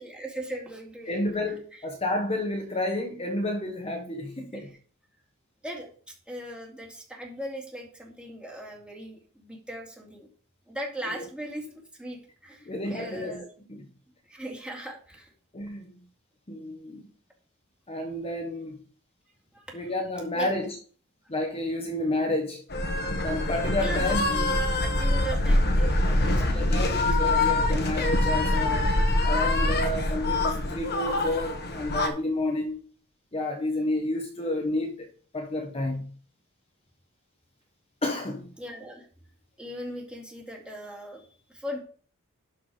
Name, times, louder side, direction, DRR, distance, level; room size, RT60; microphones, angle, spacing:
voice 1, 0.0-1.2 1.7-1.8 4.5-4.8 5.6-10.3 10.7-11.7 11.9-13.5 14.3-15.3 19.5-19.8 20.3-20.5 23.8-27.3 38.6-39.1 39.6-41.8, right 1 dB, 5° right, 2.4 m, -39 dB
voice 2, 1.1-4.7 11.1-11.2 12.6-13.4 13.7-13.8 15.5-15.9 16.5-17.1 17.9-18.8 19.7-20.8 21.3-22.6 23.2-24.3 26.4-28.9 29.2-32.8 33.3-35.1 35.3-36.1 38.0-38.5, left 1 dB, 25° left, 1.2 m, -30 dB
sound 1, 22.7-32.1, left 2 dB, 50° left, 1.4 m, -24 dB
12.0 x 4.7 x 4.9 m
head